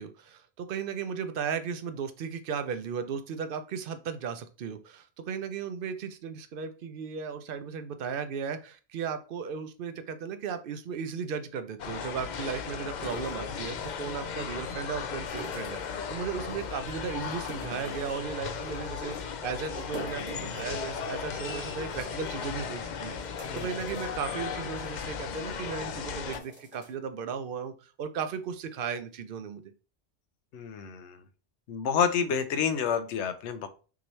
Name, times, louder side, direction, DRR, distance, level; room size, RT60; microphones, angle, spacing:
voice 1, 0.0-23.2 23.5-29.7, right 6 dB, 60° right, 9 dB, 0.7 m, -36 dB
sound 1, 11.8-26.4, left 6 dB, 55° left, 0.5 m, -36 dB
sound 2, 13.0-14.0 15.3-16.0 16.5-16.9 17.3-18.2 18.6-18.8 19.1-19.2 19.7-21.2 21.6-21.7 21.9-22.0 22.7-22.8 23.2-24.2 24.6-24.9 25.4-25.5 26.1-26.9, right 1 dB, 25° left, 1.8 m, -45 dB
voice 2, 30.5-31.2 31.7-33.7, left 7 dB, 80° left, 10 dB, 0.9 m, -29 dB
5.9 x 2.9 x 3.1 m, 0.36 s
omnidirectional pair, 1.2 m